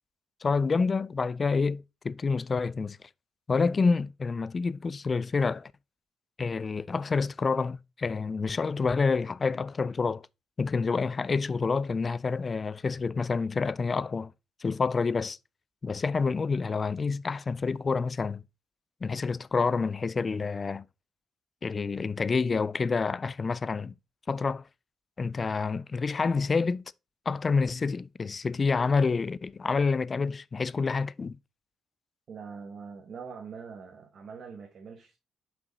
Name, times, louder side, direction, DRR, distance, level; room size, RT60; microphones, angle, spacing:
voice 1, 0.4-3.0 3.5-5.7 6.4-10.3 10.6-14.3 14.6-15.4 15.8-18.4 19.0-20.9 21.6-23.9 24.3-24.6 25.2-26.8 27.3-31.4, left 4 dB, 35° left, 0.3 m, -28 dB
voice 2, 32.3-35.2, right 5 dB, 55° right, 1.2 m, -43 dB
5.6 x 5.3 x 3.9 m
cardioid pair, 90°, 0 cm